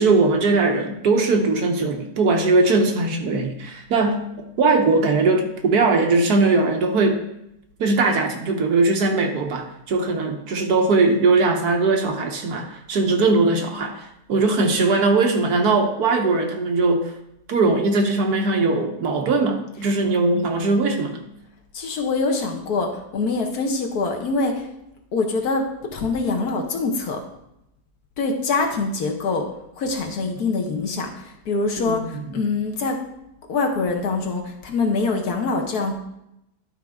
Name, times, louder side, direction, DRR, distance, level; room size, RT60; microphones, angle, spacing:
voice 1, 0.0-4.3 4.6-7.2 7.8-17.1 17.5-21.2 31.9-32.0, right 3 dB, 65° right, 3 dB, 1.4 m, -20 dB
voice 2, 21.7-24.7 25.1-27.2 28.2-29.5 29.8-33.0 33.5-35.9, left 3 dB, 65° left, 2 dB, 1.5 m, -24 dB
11.5 x 4.6 x 3.6 m, 0.83 s
omnidirectional pair, 1.8 m